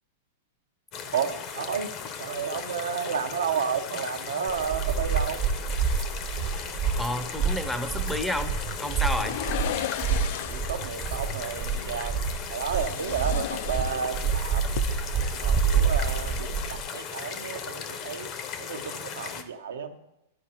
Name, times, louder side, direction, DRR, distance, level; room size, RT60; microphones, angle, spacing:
sound 1, 0.9-19.4, left 7 dB, 45° left, 0.7 m, -37 dB
voice 1, 1.1-1.9 2.2-5.4 10.4-12.2 12.5-14.7 15.3-18.3 18.6-20.0, right 7 dB, 85° right, 6 dB, 0.7 m, -32 dB
sound 2, 4.5-16.8, right 6 dB, 40° right, 0.6 m, -28 dB
voice 2, 7.0-9.4, left 1 dB, 5° left, 10 dB, 0.6 m, -31 dB
sound 3, 9.2-10.8 12.4-14.4 14.6-14.8, left 11 dB, 65° left, 0.3 m, -34 dB
11.5 x 4.6 x 2.9 m, 0.86 s
hypercardioid pair, 125°, 0 cm